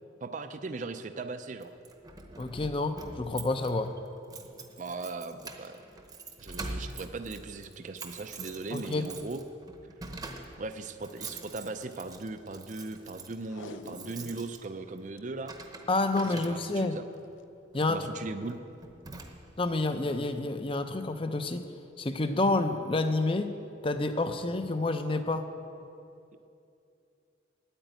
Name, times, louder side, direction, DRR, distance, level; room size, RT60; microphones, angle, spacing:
voice 1, 0.2-1.7 4.8-5.8 6.4-9.4 10.6-15.6 16.2-17.1 17.9-18.6, right 3 dB, 40° right, 9 dB, 0.4 m, -38 dB
Keys jangling, 1.6-17.0 17.7-18.0 18.5-18.6 18.8-19.7, right 3 dB, 20° right, 0.8 m, -45 dB
voice 2, 2.4-3.9 8.7-9.0 15.9-17.0 17.7-18.0 19.6-21.6 22.0-23.5 23.8-25.4, left 2 dB, 25° left, 9 dB, 0.6 m, -29 dB
Packing tape duct tape, 13.4-14.5 14.9-15.2 15.8-16.2 17.2-17.4 18.0-18.1, left 3 dB, 75° left, 0.6 m, -47 dB
9.1 x 8.9 x 9.0 m, 2.6 s
head